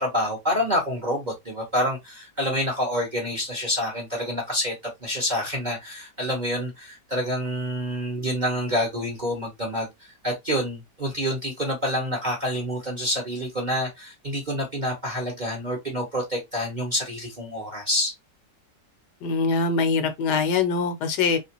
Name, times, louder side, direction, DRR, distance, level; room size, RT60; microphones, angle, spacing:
voice 1, 0.0-4.7 5.0-18.1, equal, 35° right, 0.8 m, -27 dB
voice 2, 19.2-21.4, left 4 dB, 70° left, 1.2 m, -23 dB
3.2 x 2.9 x 2.9 m
omnidirectional pair, 1.9 m